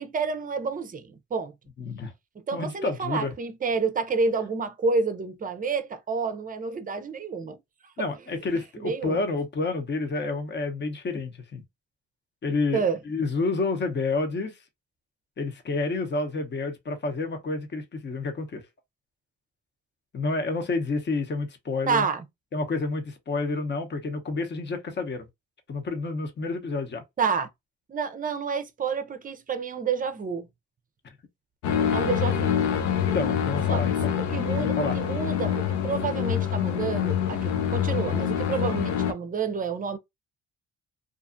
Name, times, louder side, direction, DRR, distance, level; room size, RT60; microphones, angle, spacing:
voice 1, 0.0-1.5 2.4-7.6 8.8-9.2 12.7-13.0 21.9-22.3 27.2-27.5 27.9-30.5 31.9-32.6 33.7-33.8 34.2-40.0, right 5 dB, 30° right, 0.5 m, -29 dB
voice 2, 1.8-2.1 2.5-3.3 8.0-11.6 12.4-14.6 15.4-18.6 20.1-22.0 22.5-25.3 25.7-27.0 33.0-34.1 34.6-35.0, left 3 dB, 35° left, 0.8 m, -29 dB
sound 1, 31.6-39.1, left 9 dB, 75° left, 0.6 m, -26 dB
2.5 x 2.4 x 2.5 m
cardioid pair, 90°, 30 cm